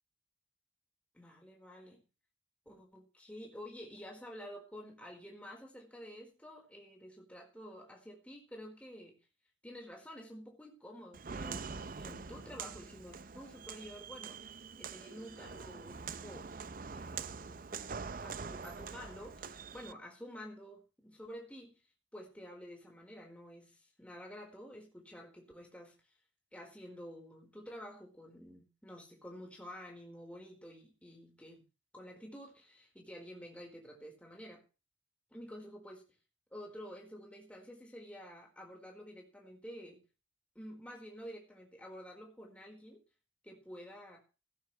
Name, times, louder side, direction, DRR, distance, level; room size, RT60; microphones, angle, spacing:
voice 1, 1.1-2.0 2.7-9.2 9.6-16.5 16.9-17.7 18.2-21.8 22.1-26.0 26.5-31.6 31.9-34.6 35.3-36.0 36.5-40.0 40.5-43.0 43.4-44.2, equal, 5° left, 0 dB, 4.6 m, -50 dB
Walk footsteps, 11.1-19.9, right 5 dB, 45° right, 0.6 m, -44 dB
17.0 x 13.0 x 3.3 m, 0.33 s
head